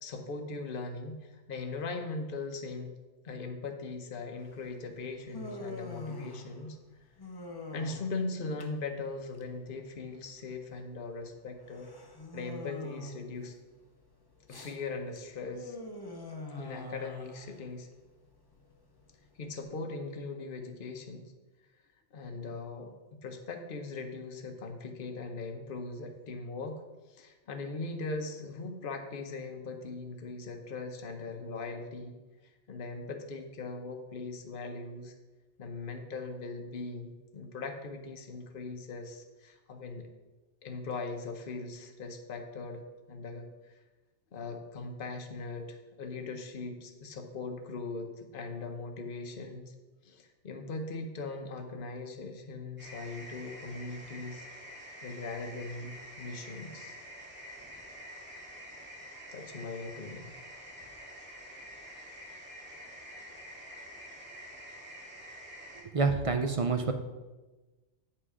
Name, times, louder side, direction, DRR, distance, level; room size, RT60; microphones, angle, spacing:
voice 1, 0.0-2.9 3.2-6.8 7.7-11.9 12.3-13.5 14.5-15.8 16.6-17.9 19.4-21.3 22.1-22.9 23.2-26.8 27.1-32.1 32.4-35.1 35.6-40.1 40.6-43.7 44.3-49.7 50.0-54.5 55.0-57.0 59.3-60.3, left 3 dB, 50° left, 4 dB, 1.0 m, -40 dB
Human voice, 4.4-19.6, left 2 dB, 20° left, 0.8 m, -46 dB
sound 1, 52.8-65.8, equal, 10° right, 2.2 m, -47 dB
voice 2, 65.9-66.9, right 4 dB, 40° right, 6 dB, 0.5 m, -27 dB
8.1 x 5.8 x 4.9 m, 1.2 s
omnidirectional pair, 1.2 m